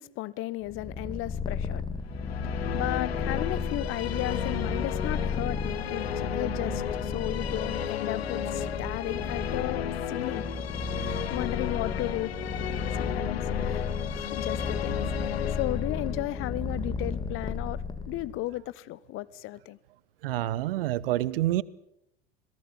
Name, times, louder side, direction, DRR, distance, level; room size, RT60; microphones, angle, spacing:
voice 1, 0.0-1.8 2.7-10.5 11.0-12.3 12.9-13.8 14.1-19.8, left 17 dB, 40° left, 1.0 m, -35 dB
Purr, 0.7-18.4, left 4 dB, 15° left, 2.7 m, -33 dB
Musical instrument, 2.1-17.5, left 10 dB, 75° left, 1.1 m, -35 dB
voice 2, 20.2-21.6, right 15 dB, 60° right, 1.0 m, -27 dB
27.0 x 18.0 x 7.2 m
figure-of-eight pair, 80°, 31 cm